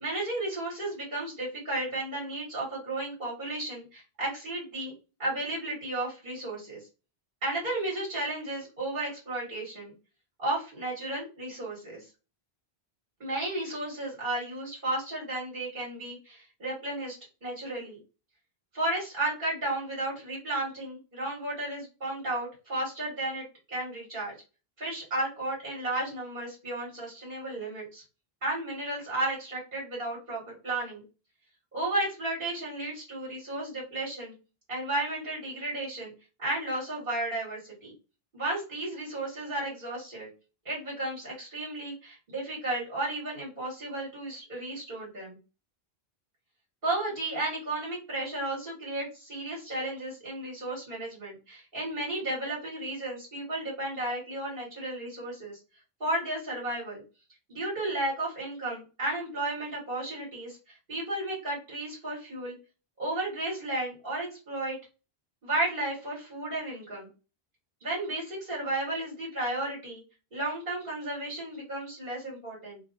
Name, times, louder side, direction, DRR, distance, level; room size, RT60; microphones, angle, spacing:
voice 1, 0.0-4.9 5.2-6.9 7.4-9.9 10.4-12.1 13.2-18.0 18.7-24.3 24.8-28.0 28.4-31.0 31.7-34.3 34.7-36.1 36.4-37.9 38.3-40.3 40.6-45.4 46.8-55.6 56.0-57.0 57.5-62.5 63.0-64.8 65.4-67.1 67.8-70.0 70.3-72.8, right 2 dB, 55° right, -5 dB, 1.7 m, -33 dB
2.8 x 2.6 x 2.7 m, 0.32 s
omnidirectional pair, 1.1 m